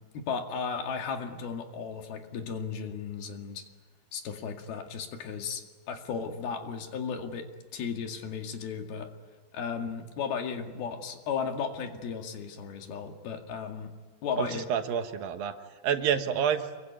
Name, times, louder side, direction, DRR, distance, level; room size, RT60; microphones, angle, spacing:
voice 1, 0.1-3.6 4.1-7.5 7.7-9.1 9.5-13.9 14.2-14.7, left 6 dB, 85° left, 4 dB, 4.1 m, -35 dB
voice 2, 14.4-15.5 15.8-16.7, right 8 dB, 75° right, 7 dB, 3.1 m, -28 dB
27.0 x 23.0 x 9.6 m, 1.3 s
omnidirectional pair, 4.3 m